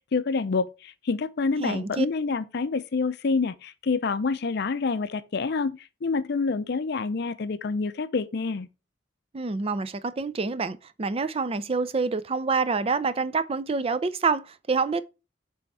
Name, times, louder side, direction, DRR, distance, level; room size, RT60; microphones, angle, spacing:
voice 1, 0.1-8.7, left 4 dB, 60° left, 0.5 m, -27 dB
voice 2, 1.6-2.1 9.3-15.0, right 4 dB, 30° right, 0.4 m, -27 dB
6.9 x 3.5 x 4.6 m
head